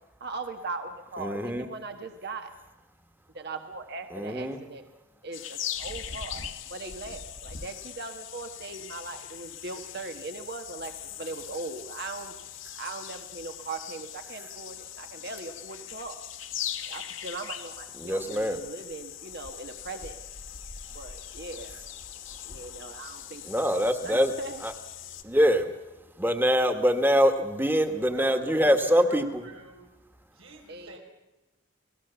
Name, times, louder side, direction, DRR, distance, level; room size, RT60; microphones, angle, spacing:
voice 1, 0.2-2.5 3.3-4.9 5.2-6.4 6.7-10.9 11.2-12.3 12.7-16.2 16.9-20.2 20.9-21.8 22.4-23.8 24.0-24.6 30.7-31.0, right 3 dB, 55° right, 6 dB, 1.3 m, -39 dB
voice 2, 1.2-1.7 4.1-4.6 18.0-18.6 23.5-24.3 24.6-24.7 25.2-25.7 26.2-29.4, equal, 10° right, 7 dB, 1.6 m, -24 dB
sound 1, 5.3-25.2, left 9 dB, 70° left, 1.7 m, -41 dB
voice 3, 27.9-29.8 30.3-31.0, right 2 dB, 90° right, 1 dB, 4.6 m, -47 dB
29.0 x 18.5 x 7.0 m, 1.0 s
head